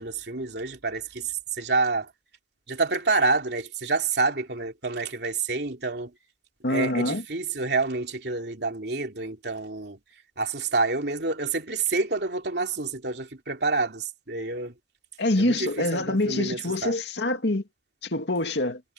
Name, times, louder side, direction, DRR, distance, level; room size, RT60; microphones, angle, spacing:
voice 1, 0.0-2.1 2.7-6.1 6.7-10.0 10.4-14.7 15.4-16.9, right 3 dB, 75° right, 2.9 m, -28 dB
voice 2, 6.6-7.2 15.2-17.6 18.0-18.8, left 2 dB, 85° left, 2.2 m, -25 dB
head